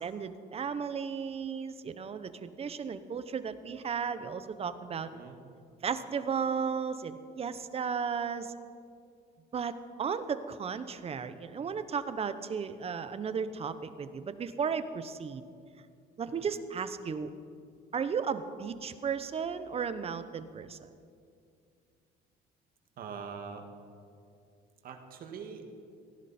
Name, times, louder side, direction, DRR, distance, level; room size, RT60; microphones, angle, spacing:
voice 1, 0.0-5.1 5.8-8.5 9.5-15.4 16.2-17.3 17.9-20.8, right 6 dB, 35° right, 12 dB, 0.9 m, -34 dB
voice 2, 23.0-23.6 24.8-25.7, right 6 dB, 60° right, 5 dB, 1.9 m, -43 dB
17.0 x 15.0 x 4.3 m, 2.3 s
cardioid pair, 110°, 17 cm